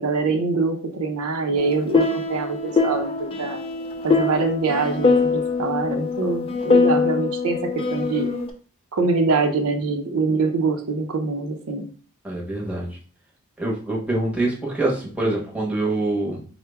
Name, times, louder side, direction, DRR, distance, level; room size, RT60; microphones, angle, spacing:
voice 1, 0.0-3.6 4.0-7.6 7.9-8.3 8.9-11.9, right 3 dB, 90° right, 5 dB, 0.6 m, -24 dB
sound 1, 1.6-8.5, left 4 dB, 25° left, 0.4 m, -23 dB
voice 2, 12.2-12.9 13.6-16.5, right 2 dB, 5° right, -4 dB, 0.9 m, -25 dB
4.6 x 2.2 x 3.3 m, 0.41 s
head